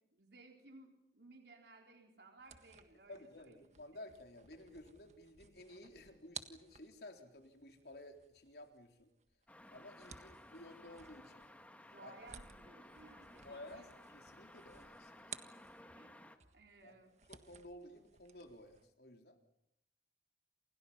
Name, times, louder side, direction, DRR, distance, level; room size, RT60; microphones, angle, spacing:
voice 1, 0.1-3.6 11.9-13.9 15.9-16.2 16.5-17.1, right 2 dB, 75° right, 2 dB, 4.0 m, -60 dB
sound 1, 2.4-16.1 16.4-18.9, right 7 dB, 40° right, 1.7 m, -57 dB
voice 2, 3.1-9.1 9.7-11.5 12.0-12.1 13.4-15.5 16.8-17.0 17.3-19.4, left 1 dB, 65° left, 4 dB, 3.7 m, -54 dB
sound 2, 9.5-16.4, left 1 dB, 10° left, 1.7 m, -58 dB
29.5 x 28.0 x 5.7 m, 0.76 s
head